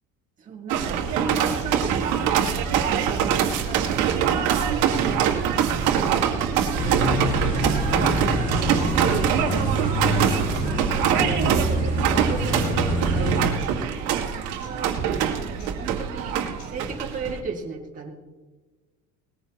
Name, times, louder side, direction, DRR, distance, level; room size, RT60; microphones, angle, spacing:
voice 1, 0.4-7.2 8.5-9.4 10.4-16.4 16.6-18.1, right 4 dB, 25° right, -1 dB, 2.2 m, -36 dB
sound 1, 0.7-17.4, right 8 dB, 80° right, 1.9 m, -24 dB
sound 2, 1.6-1.7 2.5-2.7 3.6-3.7 4.6-4.7 5.6-5.7 6.5-6.7 7.5-7.7 8.5-8.7 9.5-9.6 10.5-10.7 11.5-11.7 12.6-12.7 13.6-13.7 14.6-14.7 15.6-15.7 16.6-16.7, left 4 dB, 80° left, 5.1 m, -50 dB
sound 3, 6.8-13.5, right 1 dB, 25° left, 2.1 m, -26 dB
20.0 x 15.0 x 3.0 m, 1.3 s
cardioid pair, 155°, 29 cm